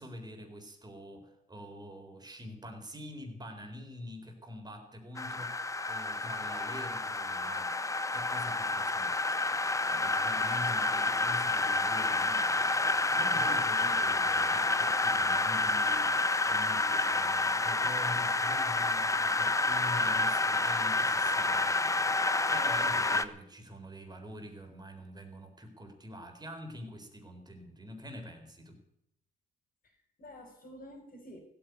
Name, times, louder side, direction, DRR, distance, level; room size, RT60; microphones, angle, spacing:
voice 1, 0.0-9.2 9.8-12.7 13.1-28.8, equal, 20° right, 4 dB, 3.9 m, -45 dB
sound 1, 5.2-23.2, left 3 dB, 15° left, 0.8 m, -29 dB
voice 2, 13.4-14.2 29.8-31.4, left 1 dB, 45° left, -4 dB, 4.8 m, -50 dB
16.0 x 8.7 x 9.4 m, 0.78 s
cardioid pair, 90°, 20 cm